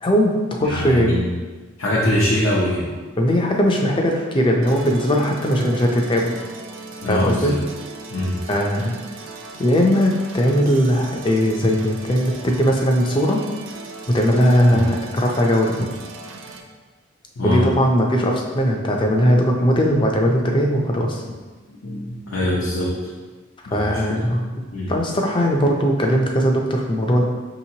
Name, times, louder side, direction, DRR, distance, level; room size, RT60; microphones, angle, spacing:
voice 1, 0.0-1.2 3.2-6.3 7.1-7.6 8.5-9.0 9.6-13.4 14.1-15.9 17.4-21.2 23.7-24.4 24.9-27.2, equal, 25° left, 1 dB, 0.4 m, -19 dB
voice 2, 0.6-1.3 1.8-2.9 7.0-7.6 8.1-8.4 14.7-14.8 17.4-17.7 21.8-22.9 23.7-24.2 24.7-25.0, left 1 dB, 85° left, -6 dB, 0.7 m, -23 dB
sound 1, 4.6-16.6, right 3 dB, 70° right, 0.4 m, -38 dB
5.7 x 2.9 x 2.8 m, 1.3 s
head